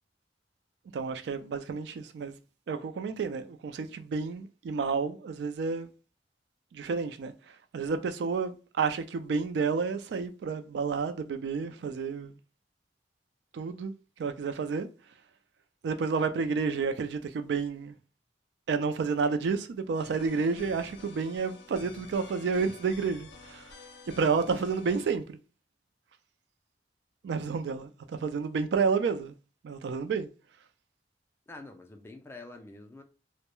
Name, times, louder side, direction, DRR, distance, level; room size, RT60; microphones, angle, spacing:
voice 1, 0.9-2.3 2.7-5.9 6.7-12.3 13.5-13.9 14.2-14.9 15.8-17.9 18.7-23.7 24.2-25.4 27.2-29.3 29.6-30.3, right 5 dB, 65° right, 0.3 m, -30 dB
sound 1, 19.9-25.1, left 3 dB, 70° left, 0.5 m, -50 dB
voice 2, 31.5-33.0, left 2 dB, 15° left, 0.3 m, -46 dB
2.2 x 2.0 x 2.9 m
head